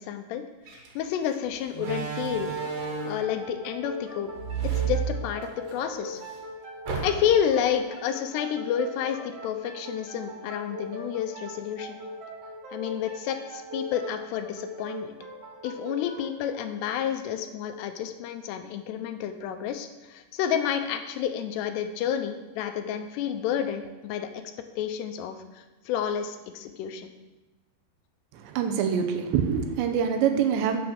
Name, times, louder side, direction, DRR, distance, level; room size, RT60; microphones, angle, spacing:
voice 1, 0.0-2.6 3.0-4.3 4.8-6.2 7.0-12.0 12.7-15.2 15.6-24.4 24.8-27.1, left 9 dB, 80° left, 7 dB, 2.8 m, -30 dB
Slam, 0.7-0.9 1.7-3.3 4.3-5.8 6.1-6.2 6.9-7.5, right 7 dB, 60° right, 3.2 m, -31 dB
sound 1, 2.6-17.9, equal, 45° right, 2.3 m, -40 dB
voice 2, 28.3-30.8, right 7 dB, 90° right, 6 dB, 3.2 m, -25 dB
11.0 x 6.0 x 6.4 m, 1.1 s
omnidirectional pair, 4.9 m